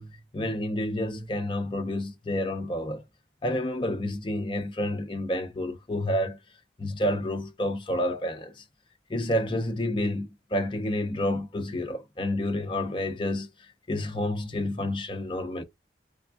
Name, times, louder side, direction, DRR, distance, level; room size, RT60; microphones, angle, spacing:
voice 1, 0.0-3.0 3.4-6.4 6.8-8.5 9.1-13.5 13.9-15.6, left 1 dB, 25° left, 0.5 m, -29 dB
3.5 x 3.3 x 2.4 m
head